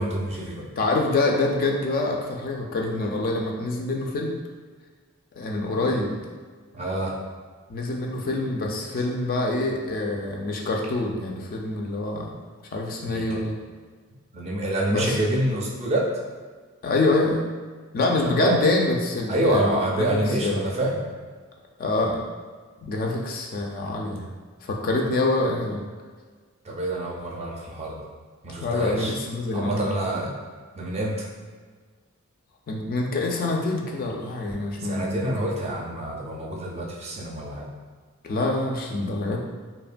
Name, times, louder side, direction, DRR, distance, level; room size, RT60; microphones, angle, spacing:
voice 1, 0.0-0.7 6.7-7.2 13.1-13.5 14.3-16.1 18.2-18.6 19.3-21.0 26.6-28.0 28.4-29.2 29.5-30.4 30.7-31.3 34.8-37.7, right 1 dB, 30° right, -2 dB, 0.4 m, -27 dB
voice 2, 0.8-4.3 5.3-6.2 7.7-12.4 12.7-13.5 14.9-15.2 16.8-17.4 17.9-20.7 21.8-22.2 22.8-24.3 24.6-25.8 28.6-30.1 32.7-35.4 38.2-39.4, left 2 dB, 45° left, 0 dB, 0.3 m, -26 dB
2.8 x 2.1 x 2.5 m, 1.5 s
head